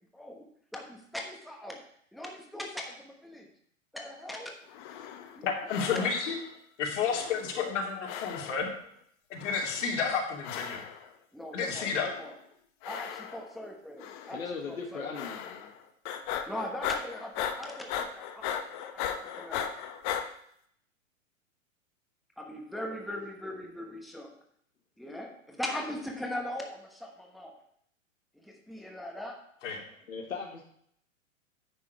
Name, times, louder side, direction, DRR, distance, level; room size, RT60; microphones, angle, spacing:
voice 1, 0.1-0.5 0.7-1.8 2.1-3.5 3.9-4.6 5.4-5.5 5.9-6.1 11.3-12.4 12.8-14.4 14.7-15.3 16.5-19.0 19.4-19.7 22.4-24.3 25.0-27.5 28.3-29.4, left 1 dB, ahead, 1 dB, 1.1 m, -40 dB
sound 1, 4.7-5.4 5.7-6.5 7.0-8.8 9.4-10.0 10.4-11.1 11.7-12.3 12.8-13.6 14.0-14.5 15.1-15.8 16.0-20.3, left 9 dB, 35° left, 0.9 m, -37 dB
voice 2, 5.4-6.3 6.8-8.7 9.3-10.8 11.5-12.1 29.6-29.8, left 6 dB, 60° left, 0 dB, 2.8 m, -31 dB
voice 3, 14.3-15.7 30.1-30.6, left 5 dB, 80° left, 1 dB, 1.5 m, -38 dB
9.8 x 6.1 x 4.7 m, 0.67 s
hypercardioid pair, 110°, 41 cm